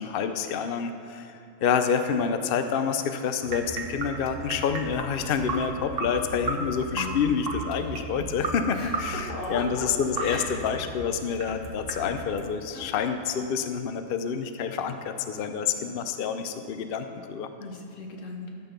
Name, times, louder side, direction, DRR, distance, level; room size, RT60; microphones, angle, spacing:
voice 1, 0.0-1.3 1.6-17.5, left 6 dB, 60° left, 8 dB, 0.7 m, -28 dB
sound 1, 3.4-12.4, right 2 dB, 50° right, 1.1 m, -35 dB
voice 2, 6.9-7.2 8.7-9.9 10.2-10.6 12.7-12.9 17.6-18.5, left 2 dB, 75° left, 1 dB, 1.6 m, -37 dB
12.0 x 5.8 x 6.8 m, 2.4 s
omnidirectional pair, 1.3 m